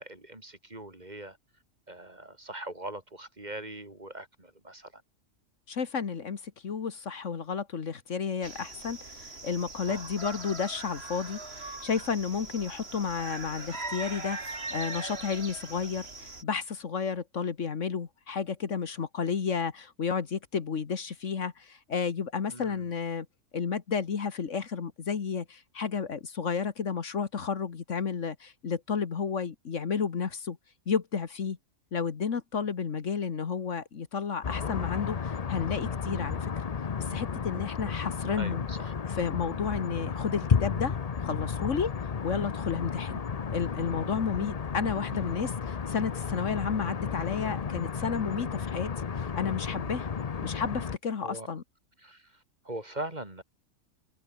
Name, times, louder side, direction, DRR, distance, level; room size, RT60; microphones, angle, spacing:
voice 1, 0.0-1.4 1.9-5.0 9.9-10.1 22.5-22.9 38.4-38.9 44.1-44.2 51.2-51.6 52.0-52.3 52.6-53.4, right 1 dB, 30° right, 3.7 m, -41 dB
voice 2, 5.7-23.3 23.5-30.6 30.9-31.6 31.9-36.5 37.0-38.6 39.1-41.9 42.2-43.2 43.5-48.9 49.2-50.1 50.4-51.6, left 6 dB, 65° left, 1.8 m, -32 dB
sound 1, 8.4-16.4, right 3 dB, 50° right, 3.6 m, -40 dB
sound 2, 34.4-51.0, left 6 dB, 35° left, 0.7 m, -33 dB
omnidirectional pair, 1.4 m